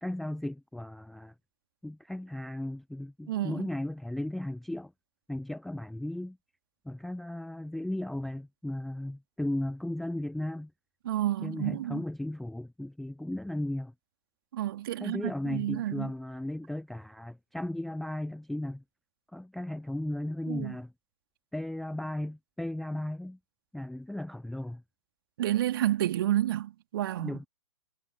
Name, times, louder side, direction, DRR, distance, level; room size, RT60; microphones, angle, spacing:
voice 1, 0.0-1.3 1.8-4.9 5.3-6.4 6.9-10.7 11.4-13.9 15.0-18.8 19.3-20.9 21.5-23.4 23.7-24.8 27.2-27.5, left 1 dB, ahead, 0.5 m, -35 dB
voice 2, 3.3-3.7 11.0-12.0 14.5-16.1 20.5-20.7 25.4-27.4, right 13 dB, 45° right, 2.9 m, -30 dB
figure-of-eight pair, 120°, 17 cm